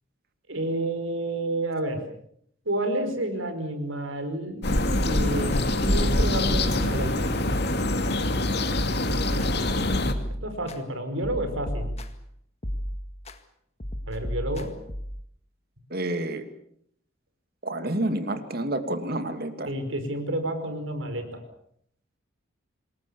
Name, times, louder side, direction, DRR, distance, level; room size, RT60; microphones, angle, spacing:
voice 1, 0.5-2.0 2.6-4.6 5.0-5.5 5.8-7.3 10.4-11.9 14.1-14.7 19.7-21.4, right 1 dB, 80° right, 8 dB, 5.1 m, -30 dB
sound 1, 4.6-10.1, left 1 dB, 55° left, 2.5 m, -25 dB
sound 2, 4.9-5.6 6.1-7.1 7.5-8.2 8.6-10.8 11.2-12.3 12.6-13.4 13.8-15.2, equal, 35° left, 1.9 m, -33 dB
voice 2, 15.9-16.4 17.6-19.7, right 1 dB, 50° right, 8 dB, 2.6 m, -29 dB
27.0 x 21.0 x 7.1 m, 0.69 s
head